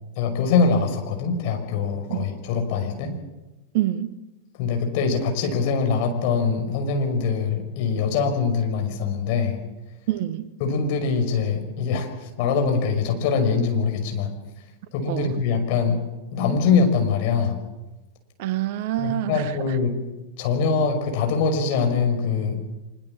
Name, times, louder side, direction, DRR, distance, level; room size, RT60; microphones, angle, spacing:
voice 1, 0.2-3.2 4.6-9.6 10.6-14.3 14.9-16.0 16.3-17.6 19.0-20.0 20.4-22.8, left 5 dB, 45° left, 5.7 m, -23 dB
voice 2, 3.7-4.1 10.1-10.5 15.1-15.4 18.4-19.5, right 13 dB, 50° right, 1.2 m, -26 dB
25.0 x 22.5 x 7.4 m
figure-of-eight pair, 90°, 0 cm